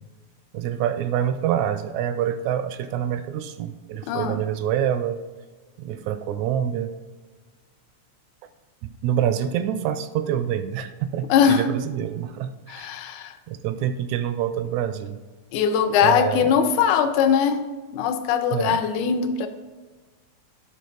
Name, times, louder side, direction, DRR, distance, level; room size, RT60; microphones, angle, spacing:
voice 1, 0.5-5.2 5.8-6.9 8.8-12.9 13.5-15.2 16.0-16.5 18.5-18.8, right 10 dB, 80° right, 10 dB, 1.7 m, -26 dB
voice 2, 4.1-4.4 11.3-11.7 12.7-13.3 15.5-19.5, left 7 dB, 80° left, 8 dB, 2.1 m, -21 dB
7.5 x 5.5 x 3.9 m, 1.4 s
omnidirectional pair, 3.5 m